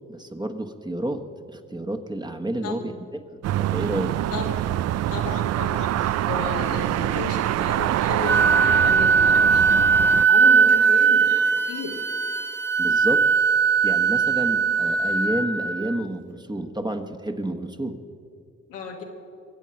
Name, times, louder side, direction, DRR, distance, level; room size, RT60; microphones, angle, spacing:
voice 1, 0.1-1.2 1.5-2.9 3.3-4.2 12.8-13.2 13.8-18.0, right 1 dB, 15° right, 6 dB, 1.3 m, -30 dB
voice 2, 2.6-3.0 4.3-4.8 5.1-9.8 10.3-12.0 14.4-14.7 18.7-19.0, left 4 dB, 85° left, 0 dB, 1.9 m, -34 dB
sound 1, 3.4-10.3, right 13 dB, 55° right, 0.4 m, -25 dB
Wind instrument woodwind instrument, 8.2-16.0, right 5 dB, 40° right, 1.0 m, -19 dB
22.0 x 8.2 x 5.8 m, 2.4 s
hypercardioid pair, 50°, 31 cm